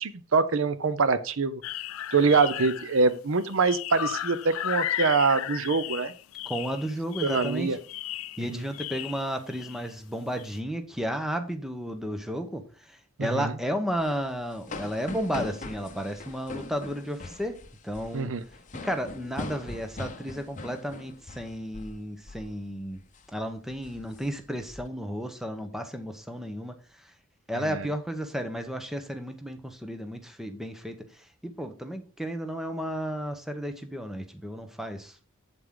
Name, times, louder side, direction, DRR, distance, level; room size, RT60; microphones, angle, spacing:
voice 1, 0.0-1.6 2.1-6.1 7.2-7.8 8.5-8.6 13.2-13.5 18.1-18.4 27.6-27.9, right 4 dB, 70° right, 0.6 m, -24 dB
sound 1, 1.6-3.1 3.4-9.9 10.4-10.6, left 12 dB, 80° left, 0.4 m, -35 dB
voice 2, 6.4-7.8 8.4-17.6 17.8-18.3 18.8-23.0 23.3-26.8 27.0-27.1 27.5-35.2, equal, ahead, 0.9 m, -33 dB
sound 2, 13.9-22.0 22.3-22.5 22.9-23.2 23.7-24.8, left 2 dB, 35° left, 0.9 m, -41 dB
7.8 x 7.4 x 3.8 m
head